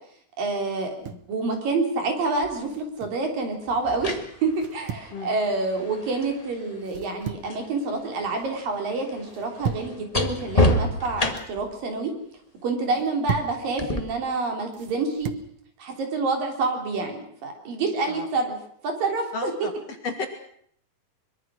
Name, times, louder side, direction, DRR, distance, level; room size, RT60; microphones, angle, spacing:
voice 1, 0.4-12.1 12.6-15.3 15.8-18.6 18.8-19.7, right 3 dB, 65° right, 3 dB, 5.1 m, -27 dB
sound 1, 0.8-1.3 2.6-3.3 4.5-5.1 6.8-7.6 8.0-8.4 9.3-10.0 11.0-11.5 12.8-13.6 14.7-15.5, right 7 dB, 90° right, 1.2 m, -35 dB
sound 2, 2.4-2.6 3.7-7.7 8.0-11.7 13.8-14.0, left 1 dB, 85° left, 0.3 m, -28 dB
voice 2, 19.3-19.7 20.0-20.3, left 4 dB, 50° left, 5 dB, 2.5 m, -32 dB
23.5 x 23.0 x 6.3 m, 0.65 s
omnidirectional pair, 4.4 m